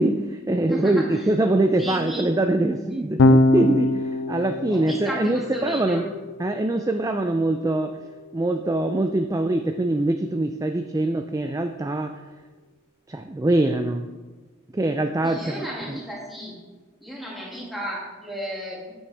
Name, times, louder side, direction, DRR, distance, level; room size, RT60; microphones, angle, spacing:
voice 1, 0.0-6.1 6.4-8.0 8.3-12.1 13.1-14.1 14.7-16.0, right 2 dB, 15° right, 6 dB, 0.3 m, -23 dB
voice 2, 0.7-1.3 1.8-2.3 4.7-6.1 15.2-16.6 17.0-18.9, equal, ahead, -5 dB, 2.1 m, -34 dB
Electric guitar / Bass guitar, 3.2-9.6, left 2 dB, 65° left, 0.5 m, -25 dB
8.5 x 8.4 x 3.4 m, 1.3 s
head